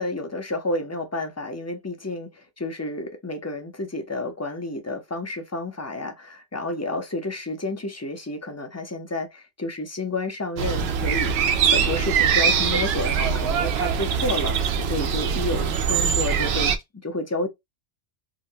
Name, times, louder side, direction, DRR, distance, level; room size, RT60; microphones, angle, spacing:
voice 1, 0.0-16.7 17.0-17.5, left 2 dB, 20° left, 0.4 m, -30 dB
sound 1, 10.6-16.8, right 7 dB, 70° right, 0.8 m, -22 dB
3.8 x 2.1 x 2.7 m
omnidirectional pair, 1.2 m